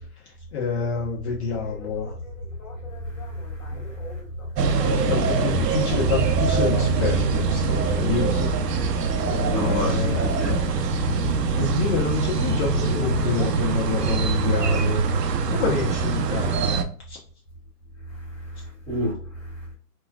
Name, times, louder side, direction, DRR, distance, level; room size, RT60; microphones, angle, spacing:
voice 1, 0.2-2.2 3.7-3.8 4.8-8.5 8.8-10.3 11.5-15.0 15.5-17.2, left 5 dB, 45° left, 0.8 m, -28 dB
sound 1, 1.6-16.2, left 3 dB, 60° left, 1.5 m, -37 dB
voice 2, 3.0-4.2 4.6-4.9 9.4-10.6 11.2-11.6 18.1-19.7, left 1 dB, 5° left, 1.6 m, -32 dB
sound 2, 4.6-16.8, right 4 dB, 90° right, 0.7 m, -23 dB
4.1 x 2.3 x 2.3 m
hypercardioid pair, 140°, 47 cm